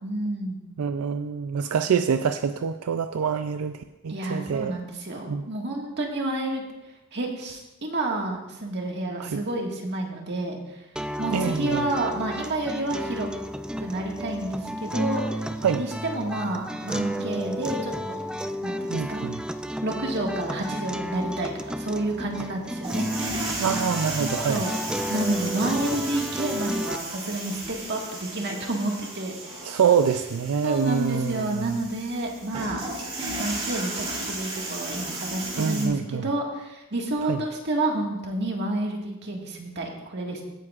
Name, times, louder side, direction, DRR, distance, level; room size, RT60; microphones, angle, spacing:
voice 1, 0.0-0.6 4.1-6.6 7.1-10.8 11.2-13.3 13.8-15.4 15.8-18.2 18.6-19.3 19.8-23.1 24.5-24.8 25.1-29.4 30.6-32.8 33.4-40.4, right 2 dB, 55° right, 0 dB, 1.8 m, -29 dB
voice 2, 0.8-4.8 5.3-5.4 9.2-9.4 11.3-11.9 15.6-15.8 18.9-19.4 23.6-24.6 29.6-31.8 35.6-36.3 37.2-37.4, right 7 dB, 85° right, 9 dB, 0.4 m, -26 dB
sound 1, 11.0-27.0, equal, 5° right, 0.3 m, -32 dB
sound 2, 22.8-35.9, right 2 dB, 25° right, 2.6 m, -35 dB
17.0 x 9.5 x 2.5 m, 1.0 s
head